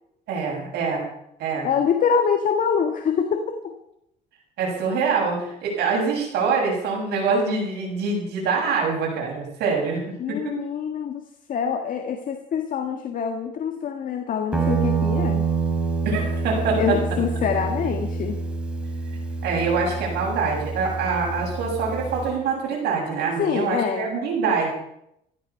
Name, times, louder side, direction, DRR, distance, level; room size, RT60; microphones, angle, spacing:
voice 1, 0.3-1.0 1.4-1.7 4.6-10.4 16.0-16.8 19.4-24.7, right 4 dB, 75° right, -1 dB, 7.3 m, -25 dB
voice 2, 1.6-3.7 10.2-15.5 16.8-18.4 23.4-24.1, left 6 dB, 50° left, 5 dB, 1.7 m, -25 dB
Guitar, 14.5-22.4, right 4 dB, 5° right, 3.1 m, -27 dB
16.0 x 13.0 x 5.7 m, 0.78 s
cardioid pair, 110°, 17 cm